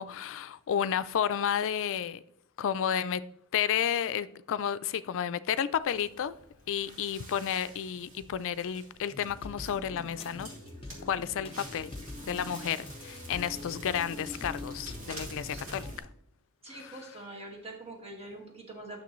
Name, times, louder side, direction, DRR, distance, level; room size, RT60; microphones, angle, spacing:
voice 1, 0.0-2.2 2.6-3.2 3.5-6.3 6.7-10.5 11.0-11.9 12.3-15.9 16.7-17.0, left 8 dB, 60° left, 0.4 m, -31 dB
Crackle, 5.8-16.0, equal, 65° right, 2.5 m, -47 dB
sound 1, 9.1-15.9, left 2 dB, 25° left, 1.0 m, -45 dB
voice 2, 16.6-19.0, right 2 dB, 30° right, 1.8 m, -44 dB
9.5 x 6.6 x 3.1 m
head